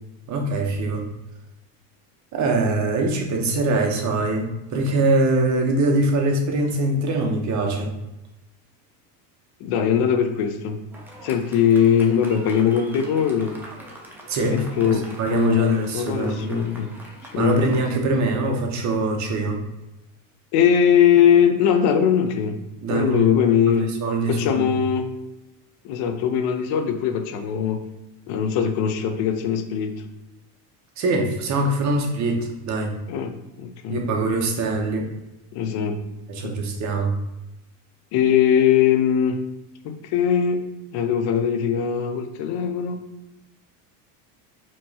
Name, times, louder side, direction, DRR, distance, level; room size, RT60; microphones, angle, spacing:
voice 1, 0.3-1.1 2.3-7.9 14.3-16.7 17.4-19.6 22.8-23.3 23.7-24.6 31.0-33.0 33.9-35.1 36.3-37.2, right 2 dB, 35° right, 2 dB, 0.8 m, -23 dB
voice 2, 9.6-10.8 11.2-13.5 14.5-15.0 15.3-16.9 17.3-17.7 20.5-22.6 22.9-23.9 24.3-25.1 25.8-27.8 28.3-30.0 33.1-34.0 35.5-36.0 36.4-36.5 38.1-39.4 39.8-40.6 40.9-43.0, left 8 dB, 55° left, 7 dB, 0.6 m, -20 dB
Fireworks, 10.9-17.8, right 1 dB, 5° right, 0.4 m, -43 dB
4.5 x 3.0 x 2.8 m, 0.96 s
supercardioid pair, 125°, 47 cm